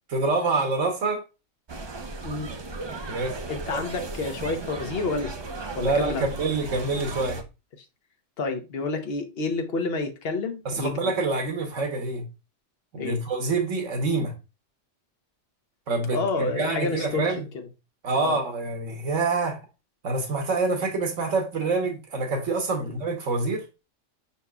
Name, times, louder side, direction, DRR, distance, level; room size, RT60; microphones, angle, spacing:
voice 1, 0.1-1.2 3.1-3.4 3.7-3.8 5.8-7.4 10.6-12.3 12.9-14.3 15.9-17.5 18.0-19.6 20.0-23.7, right 3 dB, 90° right, 1.4 m, -26 dB
sound 1, 1.7-7.4, right 3 dB, 35° right, 0.4 m, -36 dB
voice 2, 3.5-5.3 5.7-6.3 8.4-11.1 13.0-13.2 16.1-17.7 18.1-18.4 22.8-22.9, left 3 dB, 55° left, 1.1 m, -29 dB
5.4 x 4.2 x 2.3 m
omnidirectional pair, 1.3 m